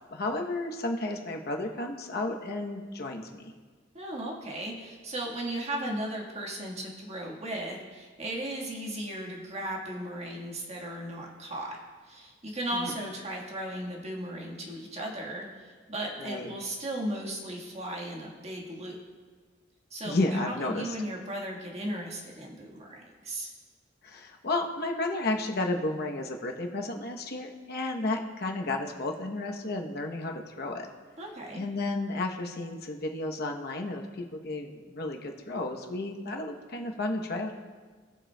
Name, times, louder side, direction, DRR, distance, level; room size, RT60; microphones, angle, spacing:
voice 1, 0.1-3.5 12.7-12.9 16.2-16.5 20.0-20.8 24.0-30.9 31.6-37.5, left 2 dB, 55° left, 2 dB, 0.9 m, -32 dB
voice 2, 3.9-11.8 12.1-19.0 19.9-23.5 31.2-31.6, right 1 dB, 35° right, -1 dB, 1.5 m, -36 dB
19.5 x 7.4 x 2.2 m, 1.5 s
head